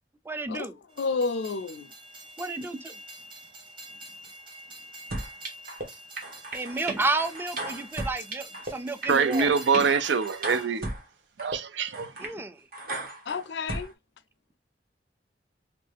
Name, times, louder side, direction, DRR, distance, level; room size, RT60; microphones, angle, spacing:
voice 1, 0.3-0.7 2.4-3.0 6.5-9.5 12.2-12.6, right 2 dB, 15° right, 0.4 m, -31 dB
Train, 0.9-10.7, right 1 dB, 30° right, 1.1 m, -46 dB
voice 2, 1.0-1.9 13.3-13.9, left 4 dB, 70° left, 0.4 m, -30 dB
sound 1, 5.1-5.8 6.2-8.7 9.0-11.0 11.4-11.6 11.9-12.3 12.7-13.9, right 2 dB, 55° right, 1.3 m, -35 dB
voice 3, 9.1-10.9 11.4-12.1, right 5 dB, 85° right, 0.5 m, -24 dB
3.2 x 3.0 x 3.3 m
head